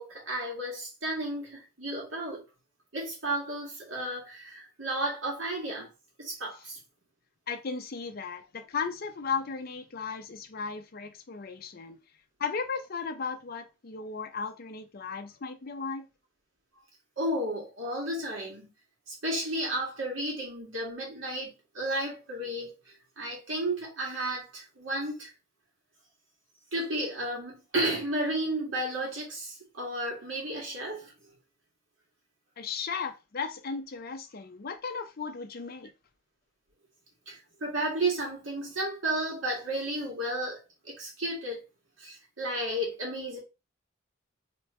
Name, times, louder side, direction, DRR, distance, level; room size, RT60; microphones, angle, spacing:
voice 1, 0.0-2.4 2.9-5.9 6.2-6.8 17.2-18.7 19.1-25.3 26.7-31.3 37.3-41.6 42.0-43.4, right 1 dB, 75° right, 1.9 m, -33 dB
voice 2, 7.5-12.0 12.4-16.1 32.6-35.9, left 5 dB, 50° left, 0.5 m, -35 dB
3.3 x 3.2 x 3.1 m
head